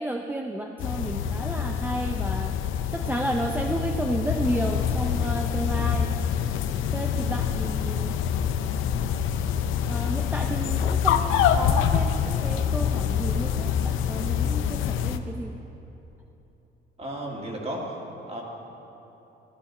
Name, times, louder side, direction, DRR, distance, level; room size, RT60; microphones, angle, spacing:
voice 1, 0.0-2.5 2.9-6.1 6.9-8.2 9.9-15.7, right 1 dB, 10° right, 3 dB, 0.5 m, -32 dB
sound 1, 0.8-15.2, left 8 dB, 90° left, 0.5 m, -26 dB
voice 2, 7.1-7.5 17.0-17.8 18.3-18.4, right 1 dB, 30° right, -2 dB, 2.5 m, -34 dB
14.5 x 11.5 x 4.2 m, 3.0 s
cardioid pair, 90°, 20 cm